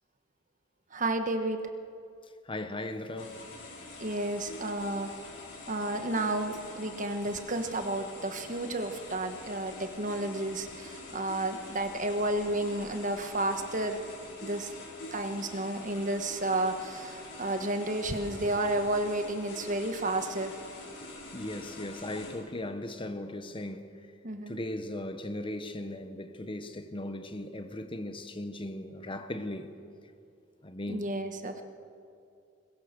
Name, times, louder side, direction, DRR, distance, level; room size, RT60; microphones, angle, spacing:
voice 1, 0.9-1.6 4.0-5.1 5.7-14.0 14.4-14.7 15.1-20.5 24.2-24.5 30.9-31.6, right 1 dB, 40° right, 1.5 m, -31 dB
voice 2, 2.4-3.4 21.3-23.9 24.5-29.7 30.6-31.1, left 1 dB, 25° left, 1.0 m, -37 dB
sound 1, 3.2-22.3, left 2 dB, 70° left, 6.1 m, -46 dB
21.5 x 21.5 x 6.8 m
head